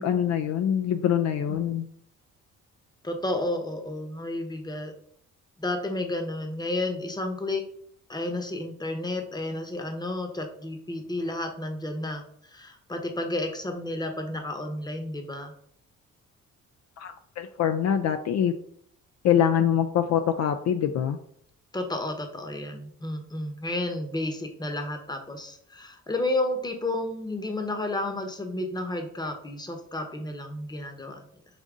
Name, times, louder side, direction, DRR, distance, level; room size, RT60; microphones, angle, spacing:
voice 1, 0.0-1.9 17.0-18.5 19.2-21.2, left 9 dB, 60° left, 7 dB, 0.4 m, -24 dB
voice 2, 3.0-4.9 5.6-7.6 8.1-15.5 21.7-31.2, left 1 dB, 15° left, 5 dB, 0.9 m, -31 dB
5.2 x 2.6 x 3.6 m, 0.64 s
cardioid pair, 90°, 30 cm